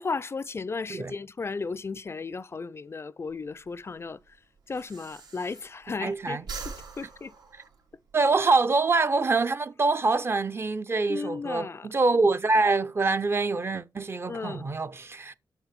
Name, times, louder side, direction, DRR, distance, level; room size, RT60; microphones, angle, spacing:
voice 1, 0.0-4.4 4.7-6.4 6.7-7.3 11.1-11.9 14.3-14.7, left 4 dB, 35° left, 0.4 m, -35 dB
Breathing, 3.3-6.1 6.4-8.3, right 5 dB, 80° right, 2.6 m, -43 dB
voice 2, 6.0-6.4 8.1-15.3, right 3 dB, 35° right, 0.6 m, -25 dB
6.8 x 6.1 x 4.8 m
cardioid pair, 90°, 7 cm